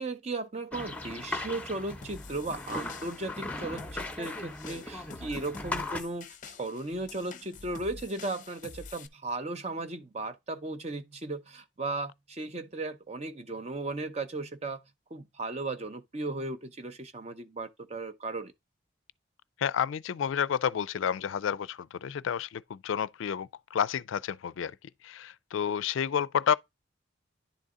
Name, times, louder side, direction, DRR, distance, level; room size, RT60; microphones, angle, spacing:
voice 1, 0.0-14.8 15.1-18.5, right 2 dB, 35° right, 0.7 m, -36 dB
sound 1, 0.7-6.0, left 2 dB, 5° left, 0.8 m, -38 dB
sound 2, 2.0-9.1, left 4 dB, 40° left, 0.6 m, -48 dB
voice 2, 19.6-24.7 25.0-26.5, left 8 dB, 80° left, 0.4 m, -30 dB
10.5 x 4.0 x 3.6 m
head